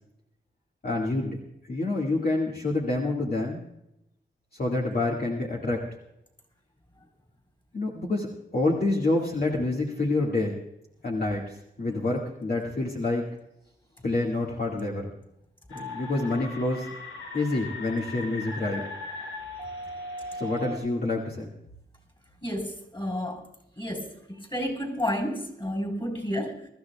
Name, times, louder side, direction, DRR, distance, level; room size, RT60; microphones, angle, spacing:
voice 1, 0.8-1.4 1.7-3.6 4.6-5.8 7.7-8.3 8.5-10.6 11.0-13.2 14.0-15.1 15.7-16.9 17.3-18.8 20.4-21.5, left 2 dB, 50° left, -3 dB, 2.1 m, -27 dB
sound 1, 15.7-20.8, left 2 dB, 90° left, 6.2 m, -38 dB
voice 2, 22.4-23.4 23.8-26.7, equal, 25° left, 4 dB, 4.1 m, -31 dB
24.5 x 13.5 x 2.4 m, 0.82 s
cardioid pair, 70°, 20 cm